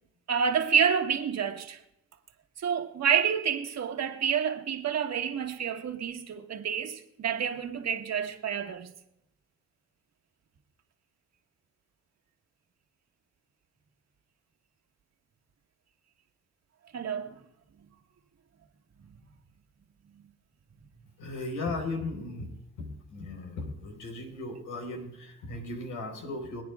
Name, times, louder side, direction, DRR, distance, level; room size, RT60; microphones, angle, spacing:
voice 1, 0.3-1.8 2.6-8.9 16.9-17.3, right 7 dB, 60° right, 1.7 m, -28 dB
voice 2, 21.2-22.5 22.8-26.6, left 2 dB, 85° left, 4.2 m, -36 dB
26.0 x 9.4 x 2.4 m
cardioid pair, 90°, 30 cm